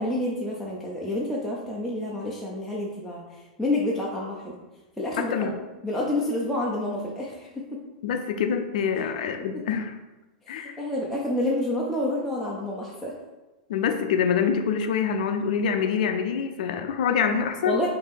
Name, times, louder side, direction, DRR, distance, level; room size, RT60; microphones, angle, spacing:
voice 1, 0.0-4.6 5.0-5.5 5.8-7.8 8.9-9.0 9.5-9.6 10.5-13.1 17.6-17.9, left 1 dB, ahead, -6 dB, 0.6 m, -29 dB
voice 2, 5.2-5.5 8.0-10.0 10.5-10.7 13.7-17.8, left 7 dB, 75° left, 6 dB, 0.5 m, -25 dB
4.8 x 2.8 x 3.6 m, 1.1 s
hypercardioid pair, 125°, 4 cm